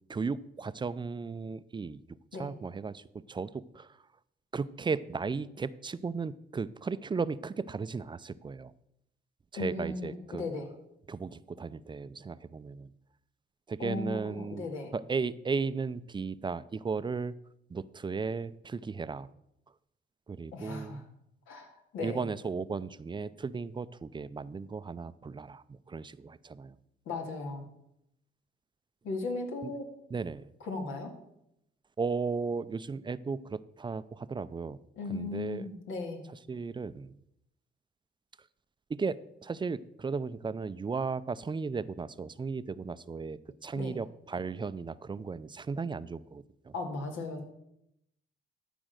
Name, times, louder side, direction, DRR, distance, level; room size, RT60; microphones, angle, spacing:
voice 1, 0.1-2.0 2.3-4.0 4.5-8.7 9.5-10.4 11.1-12.9 13.7-14.7 14.9-17.3 17.7-19.3 20.3-21.0 22.0-26.7 29.6-29.7 30.1-30.5 32.0-34.8 35.1-35.7 36.5-37.2 38.9-46.7, right 4 dB, 25° right, 15 dB, 0.5 m, -35 dB
voice 2, 9.6-10.7 13.8-14.9 20.5-21.0 21.5-21.7 21.9-22.3 27.1-27.6 29.0-29.9 30.6-31.1 35.0-36.2 43.7-44.0 46.7-47.5, left 3 dB, 85° left, 3 dB, 2.2 m, -37 dB
12.5 x 5.1 x 6.5 m, 0.80 s
cardioid pair, 90°, 20 cm